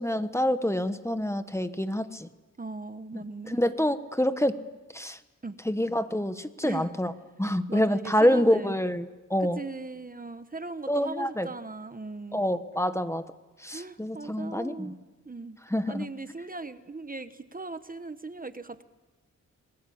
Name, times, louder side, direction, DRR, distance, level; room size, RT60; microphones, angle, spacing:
voice 1, 0.0-2.3 3.1-4.5 4.9-5.2 5.6-7.1 7.4-9.6 10.9-11.5 12.3-13.2 13.6-14.9 15.7-16.1, equal, 10° left, 10 dB, 1.1 m, -27 dB
voice 2, 2.6-3.6 5.4-5.6 6.6-6.9 7.7-8.7 9.4-12.4 13.7-15.0 15.2-15.6 15.9-18.8, right 3 dB, 30° right, 11 dB, 1.0 m, -39 dB
29.0 x 21.5 x 8.6 m, 1.2 s
wide cardioid pair, 105°, 30 cm